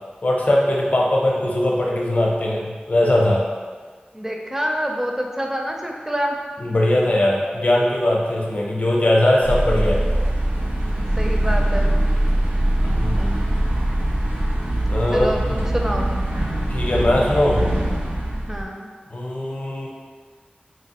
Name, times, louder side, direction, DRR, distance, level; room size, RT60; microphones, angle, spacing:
voice 1, 0.2-3.4 6.6-10.0 12.8-13.5 14.9-15.6 16.7-17.6 19.1-19.9, left 1 dB, 45° left, -2 dB, 0.6 m, -20 dB
voice 2, 4.1-6.4 11.2-11.9 15.1-16.1 18.5-18.9, equal, 10° right, 1 dB, 0.4 m, -26 dB
sound 1, 9.4-18.6, right 1 dB, 85° right, 0.5 m, -22 dB
3.0 x 2.4 x 2.8 m, 1.5 s
wide cardioid pair, 60°, 3 cm